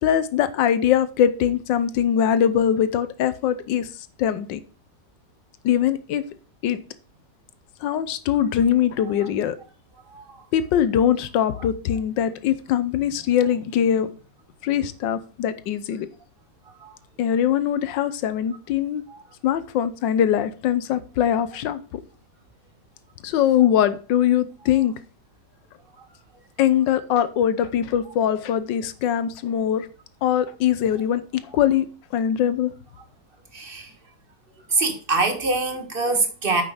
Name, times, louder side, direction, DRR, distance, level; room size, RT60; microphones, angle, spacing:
voice 1, 0.0-3.9 4.2-4.6 5.6-6.3 6.6-6.8 7.8-9.6 10.5-14.1 14.6-16.1 17.2-19.0 19.4-22.0 23.2-24.9 26.6-29.9 30.2-32.7, left 9 dB, 85° left, 1.4 m, -22 dB
voice 2, 10.1-10.4 16.8-16.9 33.5-33.9 34.7-36.6, right 3 dB, 35° right, 1.5 m, -24 dB
8.4 x 5.8 x 4.9 m
omnidirectional pair, 1.9 m